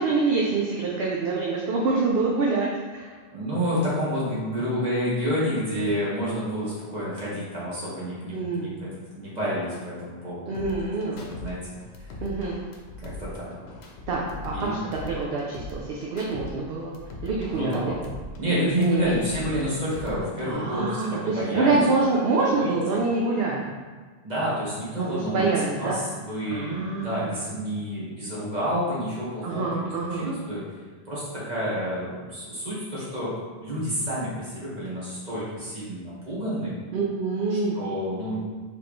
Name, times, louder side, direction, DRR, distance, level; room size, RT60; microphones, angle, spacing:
voice 1, 0.0-3.1 8.3-8.7 10.5-11.2 12.2-12.6 14.1-16.9 17.2-18.0 18.8-19.2 20.4-23.7 25.1-26.0 26.5-27.3 29.4-30.3 36.9-37.8, right 3 dB, 65° right, -3 dB, 0.8 m, -26 dB
voice 2, 3.3-8.7 9.2-10.7 11.0-11.6 12.0-12.2 13.0-13.5 14.5-14.8 17.5-18.0 18.4-21.9 22.6-23.0 24.2-25.5 25.8-30.6 31.1-33.3 33.6-36.8 37.5-38.4, equal, 40° right, -8 dB, 1.7 m, -29 dB
sound 1, 10.5-11.5 11.8-14.7 14.9-16.5 16.8-19.6 19.9-20.5, left 2 dB, 70° left, 0.9 m, -40 dB
4.6 x 3.6 x 3.1 m, 1.4 s
omnidirectional pair, 1.2 m